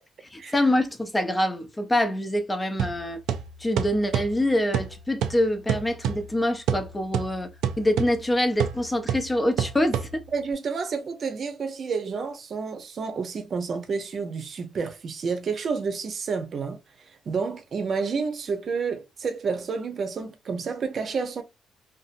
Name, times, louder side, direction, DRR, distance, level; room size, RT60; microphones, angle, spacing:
voice 1, 0.3-3.2 3.6-7.5 7.8-10.2, left 1 dB, 15° left, 0.6 m, -25 dB
sound 1, 2.8-10.5, right 8 dB, 85° right, 0.4 m, -30 dB
voice 2, 10.3-16.8 17.3-21.4, right 5 dB, 50° right, 0.7 m, -30 dB
2.7 x 2.5 x 2.5 m
cardioid pair, 90°, 0 cm